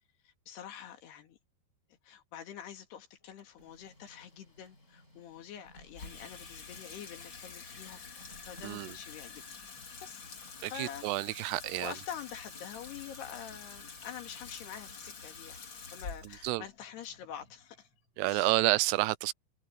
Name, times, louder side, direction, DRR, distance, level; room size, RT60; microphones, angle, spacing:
voice 1, 0.2-1.4 1.9-8.0 8.5-9.4 10.0-10.3 10.7-11.4 11.7-15.6 15.9-17.9 18.2-18.6, left 9 dB, 75° left, 4.3 m, -46 dB
Printer, 3.2-15.3, left 1 dB, 15° left, 7.6 m, -60 dB
Water tap faucet / Sink (filling or washing), 5.9-18.3, left 5 dB, 35° left, 2.4 m, -48 dB
voice 2, 10.6-11.9 16.4-16.6 18.2-19.3, right 19 dB, 85° right, 2.6 m, -29 dB
omnidirectional pair, 4.8 m